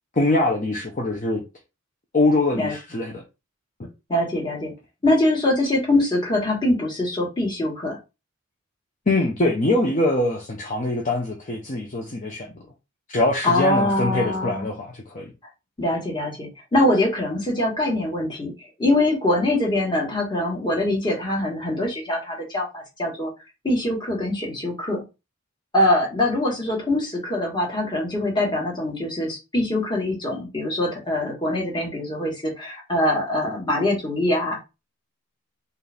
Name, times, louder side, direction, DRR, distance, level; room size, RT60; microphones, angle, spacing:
voice 1, 0.2-1.4 2.1-3.2 9.1-12.6 13.1-15.3, left 2 dB, 40° left, 0.7 m, -23 dB
voice 2, 4.1-4.7 5.0-8.0 13.4-14.7 15.8-18.5 18.8-23.3 23.6-25.0 25.7-34.6, left 1 dB, 20° left, 1.6 m, -23 dB
4.3 x 2.6 x 3.5 m
head